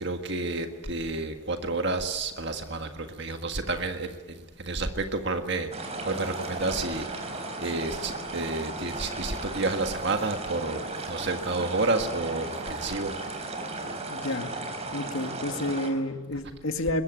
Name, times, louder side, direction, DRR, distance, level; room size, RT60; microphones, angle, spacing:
voice 1, 0.0-13.1, right 3 dB, 55° right, 5 dB, 1.7 m, -30 dB
sound 1, 5.7-15.9, right 2 dB, 30° right, 4.1 m, -35 dB
voice 2, 13.8-14.6 14.9-17.0, left 1 dB, 75° left, 6 dB, 2.2 m, -30 dB
22.5 x 21.5 x 9.4 m, 1.3 s
head